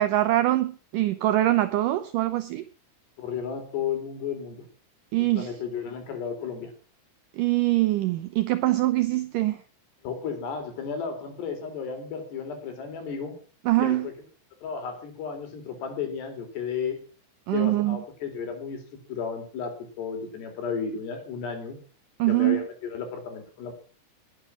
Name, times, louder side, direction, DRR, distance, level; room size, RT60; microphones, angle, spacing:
voice 1, 0.0-2.6 5.1-5.5 7.4-9.6 13.7-14.1 17.5-18.0 22.2-22.6, right 16 dB, 75° right, 12 dB, 2.0 m, -23 dB
voice 2, 3.2-4.6 5.3-6.7 10.0-13.3 13.8-14.1 14.6-17.0 17.5-18.8 19.1-21.8 22.3-23.7, left 6 dB, 80° left, 6 dB, 6.1 m, -33 dB
20.0 x 9.5 x 6.1 m, 0.40 s
omnidirectional pair, 4.7 m